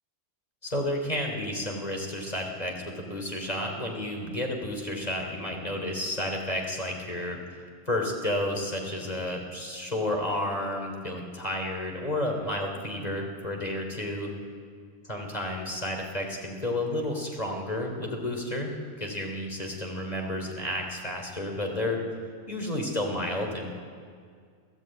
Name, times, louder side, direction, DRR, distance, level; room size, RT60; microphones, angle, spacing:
voice 1, 0.6-7.4 7.9-14.3 15.1-22.0 22.5-23.8, left 1 dB, 30° left, 2 dB, 3.6 m, -31 dB
28.0 x 16.0 x 9.1 m, 2.1 s
omnidirectional pair, 1.5 m